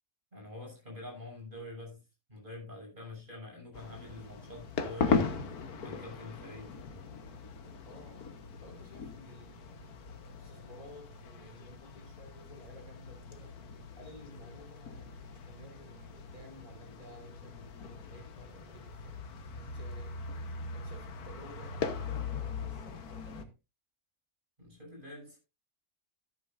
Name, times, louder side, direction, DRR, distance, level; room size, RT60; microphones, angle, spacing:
voice 1, 0.3-2.0 2.3-5.5 5.8-6.8 24.6-25.4, left 2 dB, 35° right, 6.6 m, -46 dB
sound 1, 3.7-23.4, left 5 dB, 80° left, 1.7 m, -39 dB
voice 2, 7.8-13.6 14.0-19.2 19.5-23.6, left 1 dB, 25° left, 2.2 m, -55 dB
14.0 x 11.0 x 2.5 m
omnidirectional pair, 1.6 m